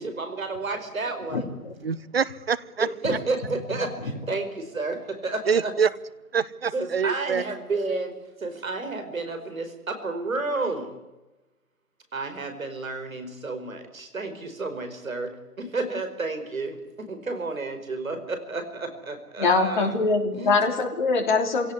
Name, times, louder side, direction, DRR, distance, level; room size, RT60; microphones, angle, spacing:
voice 1, 0.0-1.5 2.8-5.7 6.7-11.0 12.1-20.0 20.3-20.6, right 3 dB, 60° right, 4.9 m, -31 dB
voice 2, 1.3-1.7 19.4-21.7, left 3 dB, 30° left, 3.4 m, -23 dB
voice 3, 1.8-2.9 5.5-5.9 6.3-7.4, right 6 dB, 40° right, 0.8 m, -25 dB
25.5 x 17.5 x 9.8 m
figure-of-eight pair, 155°, 46 cm